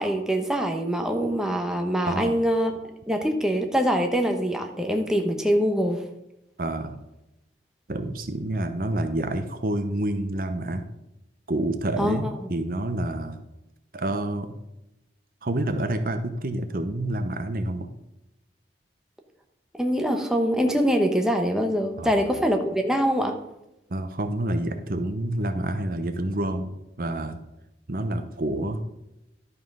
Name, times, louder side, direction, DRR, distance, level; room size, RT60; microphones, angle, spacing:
voice 1, 0.0-2.8 3.1-6.0 12.0-12.2 19.8-23.3, equal, 5° right, 3 dB, 0.9 m, -24 dB
voice 2, 2.0-2.4 6.6-7.0 7.9-10.8 11.5-13.4 13.9-14.5 15.4-17.9 22.0-22.3 23.9-27.4 27.9-29.0, right 1 dB, 55° right, 8 dB, 0.8 m, -28 dB
11.5 x 5.6 x 5.4 m, 0.89 s
head